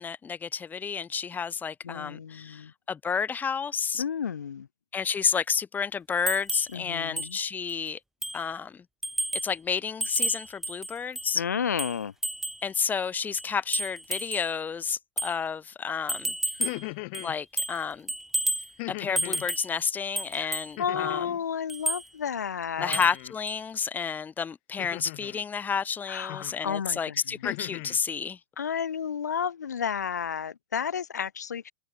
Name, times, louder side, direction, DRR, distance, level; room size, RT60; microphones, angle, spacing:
voice 1, 0.0-4.0 4.9-8.0 8.3-8.8 9.4-11.4 12.6-16.3 17.2-18.1 18.9-21.3 22.8-28.4, left 6 dB, 20° left, 1.5 m, -30 dB
voice 2, 1.8-2.7 3.9-4.7 6.7-7.4 11.3-12.1 20.4-20.5 20.8-23.0 26.1-27.2 28.6-31.7, left 7 dB, 80° left, 1.9 m, -32 dB
sound 1, 6.3-6.7 7.2-7.3 7.7-7.8 8.2-8.5 9.0-9.5 10.0-11.3 11.8-12.7 13.4-14.5 15.2-15.4 16.1-16.9 17.1-17.8 18.1-18.7 19.2-19.7 20.2-20.7 21.7-22.1 22.9-23.2 23.5-23.6, right 1 dB, 5° right, 0.9 m, -31 dB
sound 2, 16.5-17.4 18.8-19.5 20.8-21.4 22.8-23.4 24.8-25.4 26.3-26.7 27.1-28.0, left 35 dB, 50° left, 0.4 m, -38 dB
open air
hypercardioid pair, 100°, 9 cm